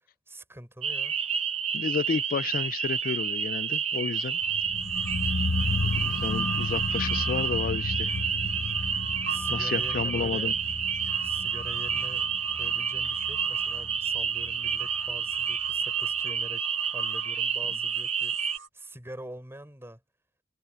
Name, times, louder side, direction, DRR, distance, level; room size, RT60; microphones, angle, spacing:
voice 1, 0.3-1.2 5.5-6.1 9.3-10.5 11.2-20.0, right 1 dB, 15° right, 6.1 m, -45 dB
sound 1, 0.8-18.6, right 7 dB, 35° right, 0.9 m, -29 dB
voice 2, 1.7-4.4 5.0-5.3 6.0-8.1 9.5-10.5, left 6 dB, 50° left, 0.3 m, -31 dB
sound 2, 4.2-4.3 4.8-18.7, right 3 dB, 85° right, 1.6 m, -44 dB
sound 3, 4.4-15.4 15.7-15.8, left 3 dB, 75° left, 0.9 m, -34 dB
head